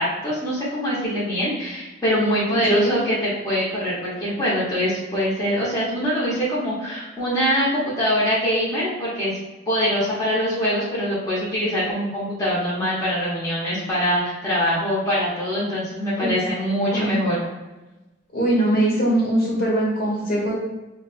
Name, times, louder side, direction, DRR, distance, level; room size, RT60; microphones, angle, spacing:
voice 1, 0.0-9.3 9.7-17.5, equal, 20° left, -10 dB, 1.0 m, -23 dB
voice 2, 2.5-3.0 16.2-16.3 16.9-17.2 18.3-20.5, right 1 dB, 50° left, -5 dB, 1.4 m, -21 dB
6.0 x 2.2 x 2.4 m, 1.1 s
head